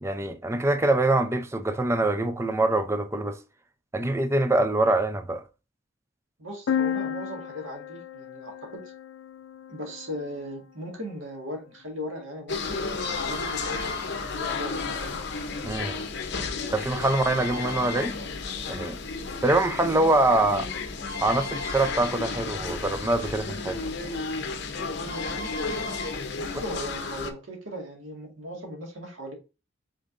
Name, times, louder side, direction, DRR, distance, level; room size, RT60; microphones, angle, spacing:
voice 1, 0.0-3.4 3.9-5.4 15.6-16.0 16.7-18.1 18.7-19.0 19.4-20.7 21.2-23.8, right 2 dB, 15° right, 0.5 m, -24 dB
voice 2, 6.4-8.8 9.7-12.8 13.2-15.2 19.8-20.1 25.0-25.5 26.4-29.3, equal, 85° right, 1.9 m, -38 dB
sound 1, 6.7-10.4, left 8 dB, 85° left, 0.5 m, -33 dB
sound 2, 12.5-27.3, left 4 dB, 60° left, 0.9 m, -32 dB
5.3 x 3.9 x 2.6 m
head